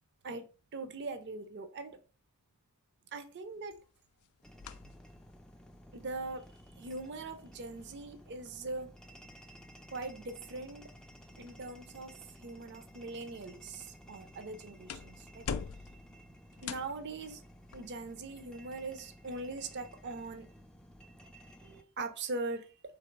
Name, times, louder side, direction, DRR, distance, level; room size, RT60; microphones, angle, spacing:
voice 1, 0.7-2.0 3.1-3.8 5.9-6.5 6.8-8.9 9.9-10.8 11.4-15.5 16.6-17.4 17.7-20.5 21.6-22.7, right 3 dB, 50° right, 0.6 m, -41 dB
sound 1, 3.5-20.9, left 6 dB, 85° left, 0.4 m, -50 dB
sound 2, 4.4-21.8, equal, 5° left, 0.4 m, -55 dB
4.0 x 2.8 x 4.5 m
head